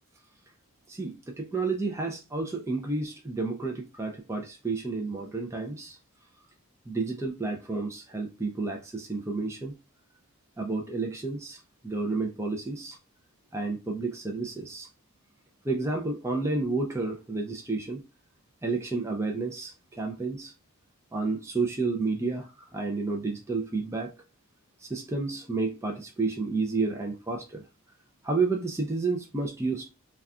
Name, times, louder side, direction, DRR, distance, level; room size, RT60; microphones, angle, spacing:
voice 1, 0.9-6.0 6.9-9.7 10.6-13.0 13.5-14.9 15.6-18.0 18.6-20.5 21.1-24.1 24.8-27.6 28.2-29.9, right 3 dB, 10° right, 0.4 m, -31 dB
3.6 x 2.3 x 2.3 m
head